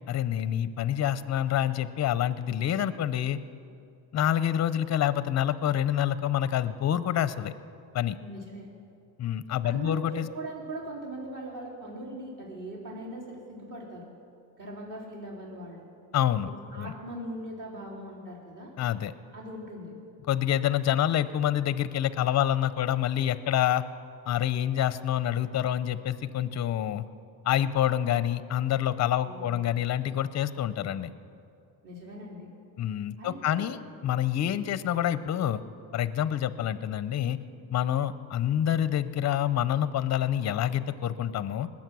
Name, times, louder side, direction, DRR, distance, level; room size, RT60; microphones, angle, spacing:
voice 1, 0.1-3.4 4.1-7.5 7.9-8.2 9.2-10.3 16.1-16.5 16.8-16.9 18.8-19.1 20.3-23.8 24.3-27.0 27.4-31.1 32.8-33.8 34.0-35.6 35.9-37.4 37.7-41.7, left 11 dB, 35° left, 15 dB, 0.6 m, -27 dB
voice 2, 8.2-8.7 9.6-14.1 14.6-15.8 16.5-18.7 19.3-19.9 29.2-29.8 31.8-32.5 33.2-33.7, right 1 dB, 40° right, -4 dB, 3.9 m, -40 dB
20.5 x 7.4 x 6.1 m, 2.5 s
cardioid pair, 95°, 46 cm